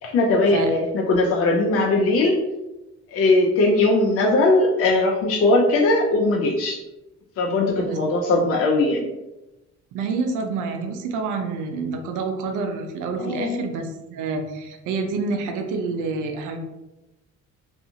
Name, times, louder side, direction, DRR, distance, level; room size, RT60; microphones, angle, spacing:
voice 1, 0.0-2.4 3.1-6.8 7.4-9.1 13.2-13.6, left 2 dB, 50° left, 0 dB, 0.5 m, -19 dB
voice 2, 9.9-16.6, right 4 dB, 90° right, 5 dB, 0.5 m, -28 dB
2.5 x 2.4 x 2.7 m, 1.0 s
cardioid pair, 90°, 30 cm